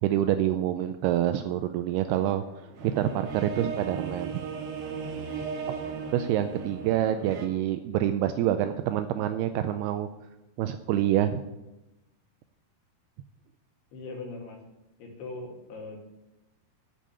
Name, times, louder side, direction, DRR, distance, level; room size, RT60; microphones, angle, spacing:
voice 1, 0.0-2.4 2.8-4.4 5.7-5.8 6.1-10.1 10.6-11.4, right 12 dB, 85° right, 9 dB, 2.3 m, -27 dB
sound 1, 2.0-7.5, right 5 dB, 65° right, 1.9 m, -37 dB
voice 2, 13.9-14.6 15.0-16.0, left 3 dB, 65° left, 0 dB, 3.9 m, -40 dB
8.4 x 7.2 x 8.7 m, 0.98 s
omnidirectional pair, 5.0 m